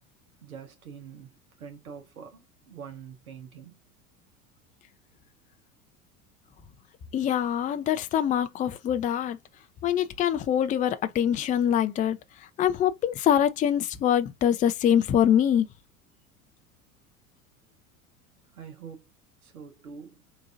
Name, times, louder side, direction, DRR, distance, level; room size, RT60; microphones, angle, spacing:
voice 1, 0.4-3.8 18.5-19.1 19.4-20.2, right 7 dB, 80° right, 1.4 m, -45 dB
voice 2, 7.1-9.4 9.8-12.2 12.6-15.7, left 10 dB, 20° left, 0.4 m, -24 dB
3.9 x 2.7 x 2.5 m
hypercardioid pair, 80°, 42 cm